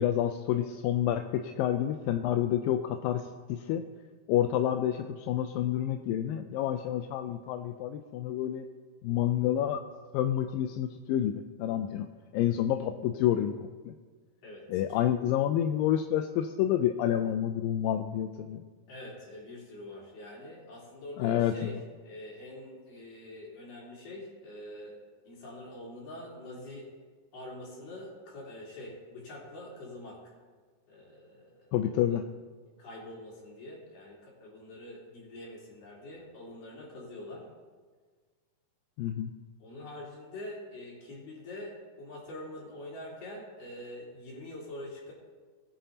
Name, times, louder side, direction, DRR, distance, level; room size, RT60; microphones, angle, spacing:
voice 1, 0.0-3.8 4.3-8.7 9.0-9.8 10.1-12.1 12.3-13.9 14.7-18.6 21.2-21.7 31.7-32.2 39.0-39.3, left 11 dB, 90° left, 6 dB, 2.3 m, -29 dB
voice 2, 14.4-15.1 18.9-21.8 22.0-24.9 25.2-26.9 27.3-30.2 30.9-32.2 32.8-37.4 39.6-45.1, left 1 dB, 70° left, -6 dB, 5.1 m, -45 dB
20.5 x 9.1 x 2.8 m, 1.5 s
omnidirectional pair, 4.0 m